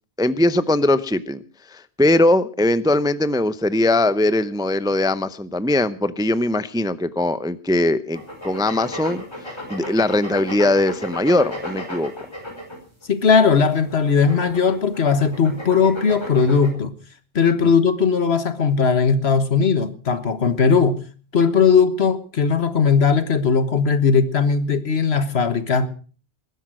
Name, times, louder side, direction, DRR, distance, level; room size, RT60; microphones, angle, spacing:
voice 1, 0.2-1.4 1.7-12.1, left 1 dB, 5° right, 14 dB, 0.5 m, -20 dB
sound 1, 8.1-13.1 13.7-16.7, left 1 dB, 25° left, 5.6 m, -34 dB
voice 2, 13.1-16.9 17.3-21.0 21.3-25.9, left 5 dB, 70° left, 12 dB, 1.6 m, -18 dB
20.5 x 10.5 x 6.2 m, 0.40 s
omnidirectional pair, 1.1 m